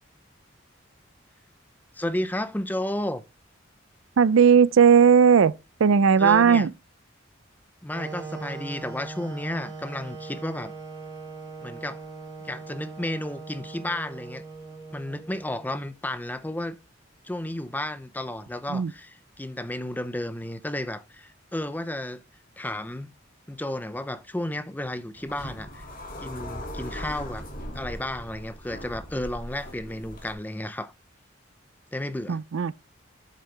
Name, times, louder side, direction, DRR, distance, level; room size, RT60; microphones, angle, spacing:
voice 1, 1.9-3.2 6.2-6.7 7.8-10.7 11.6-12.0 12.4-14.4 14.9-16.8 17.2-22.2 22.6-23.1 23.5-25.9 26.2-27.5 27.7-30.9 31.9-32.4, left 1 dB, 10° left, 0.6 m, -32 dB
voice 2, 4.2-5.5 5.8-6.7 18.7-18.9 32.3-32.7, right 6 dB, 90° right, 0.4 m, -17 dB
Wind instrument woodwind instrument, 7.9-15.9, right 4 dB, 20° right, 3.4 m, -40 dB
sound 1, 25.1-30.3, equal, 45° left, 2.4 m, -39 dB
8.3 x 6.6 x 3.3 m
head